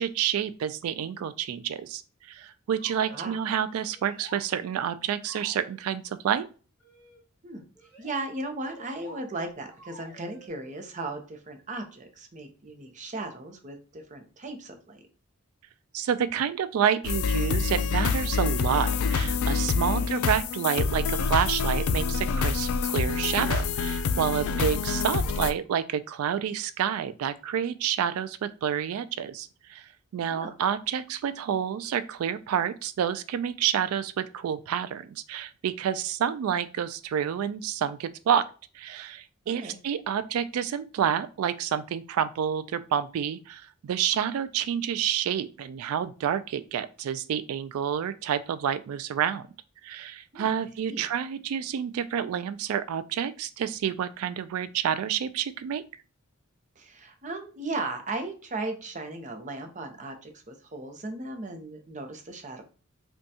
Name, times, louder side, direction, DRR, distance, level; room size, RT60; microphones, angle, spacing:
voice 1, 0.0-6.5 15.9-38.4 38.7-49.4 49.8-55.8, right 8 dB, 85° right, 13 dB, 0.3 m, -29 dB
sound 1, 2.7-3.3 3.8-4.4 5.2-5.8 6.8-7.2 7.8-8.2 8.7-9.2 9.7-10.5, right 1 dB, 10° left, 1.3 m, -50 dB
voice 2, 8.0-15.0 19.8-20.1 24.3-24.6 30.3-30.5 39.4-39.8 50.3-50.5 50.9-51.1 56.8-62.6, right 2 dB, 35° right, 6 dB, 0.7 m, -37 dB
sound 2, 17.0-25.5, left 5 dB, 80° left, 0.4 m, -26 dB
5.3 x 2.3 x 2.7 m, 0.36 s
head